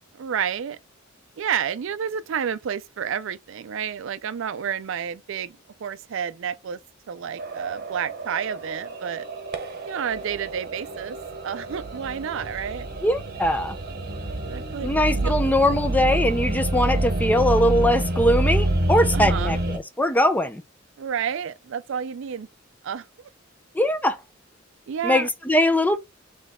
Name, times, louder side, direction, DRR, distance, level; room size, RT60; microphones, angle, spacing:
voice 1, 0.2-0.8 1.4-6.8 7.1-9.3 9.9-11.2 11.4-12.9 14.5-15.3 19.1-19.6 21.0-22.5 22.8-23.0 24.9-25.3, right 8 dB, 65° right, 0.4 m, -30 dB
sound 1, 7.4-19.8, right 1 dB, 50° right, 1.0 m, -27 dB
voice 2, 13.0-13.8 14.8-20.6 23.7-24.2 25.0-26.0, left 1 dB, 10° left, 0.5 m, -21 dB
4.1 x 3.2 x 3.5 m
head